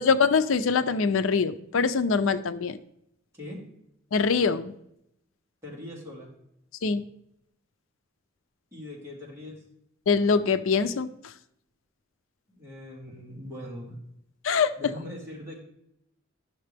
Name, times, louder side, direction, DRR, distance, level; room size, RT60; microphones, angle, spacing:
voice 1, 0.0-2.8 4.1-4.7 6.8-7.0 10.1-11.1 14.4-14.7, left 5 dB, 85° left, 12 dB, 0.5 m, -23 dB
voice 2, 5.6-6.3 8.7-9.6 12.5-13.9 14.8-15.6, left 1 dB, 15° right, -4 dB, 2.5 m, -41 dB
10.5 x 6.6 x 3.4 m, 0.78 s
head